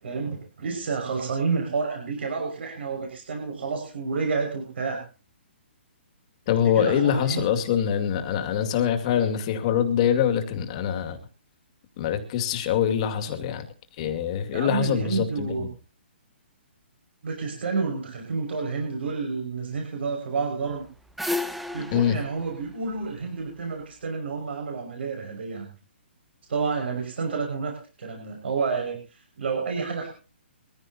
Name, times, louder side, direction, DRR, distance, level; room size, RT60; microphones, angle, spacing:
voice 1, 0.0-5.0 6.6-7.4 14.5-15.7 17.2-20.9 21.7-25.7 26.5-27.7 28.0-29.0 29.4-30.1, right 4 dB, 65° right, 6.0 m, -29 dB
voice 2, 6.5-11.2 12.0-13.7 14.0-15.7 21.9-22.2, left 9 dB, 35° left, 2.3 m, -24 dB
sound 1, 20.7-23.8, left 2 dB, ahead, 0.7 m, -33 dB
23.0 x 15.5 x 2.9 m
hypercardioid pair, 165°, 6 cm